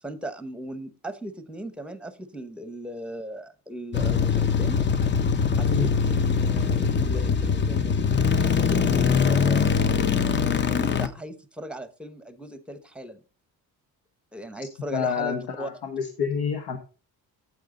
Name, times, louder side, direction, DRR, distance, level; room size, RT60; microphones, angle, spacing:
voice 1, 0.0-4.8 5.6-8.0 8.3-10.0 10.7-13.2 14.3-15.7, right 1 dB, 5° right, 12 dB, 0.8 m, -37 dB
sound 1, 3.9-11.1, left 6 dB, 30° left, 0.6 m, -22 dB
voice 2, 14.9-16.8, left 6 dB, 85° left, 6 dB, 1.2 m, -28 dB
9.3 x 7.9 x 3.8 m, 0.34 s
cardioid pair, 125°, 39 cm